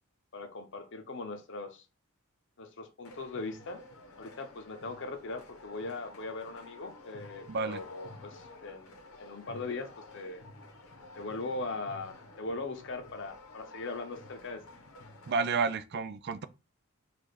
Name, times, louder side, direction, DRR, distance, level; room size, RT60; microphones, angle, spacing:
voice 1, 0.3-1.8 2.6-3.8 4.2-10.4 11.2-14.6, left 3 dB, 60° left, 0.8 m, -40 dB
sound 1, 3.0-15.6, left 2 dB, 90° left, 1.0 m, -51 dB
voice 2, 7.5-7.8 15.3-16.5, right 4 dB, 50° right, 0.4 m, -30 dB
5.0 x 2.5 x 4.1 m
head